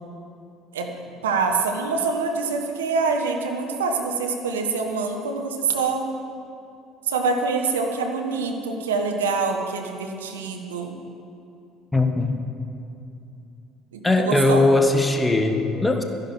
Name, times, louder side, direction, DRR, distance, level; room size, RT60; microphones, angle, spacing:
voice 1, 1.2-6.1 7.1-10.9 13.9-14.6, right 4 dB, 85° right, 3 dB, 1.1 m, -25 dB
voice 2, 11.9-12.4 14.0-16.0, left 2 dB, 10° left, 5 dB, 1.4 m, -20 dB
12.5 x 10.5 x 5.9 m, 2.7 s
hypercardioid pair, 60°, 0 cm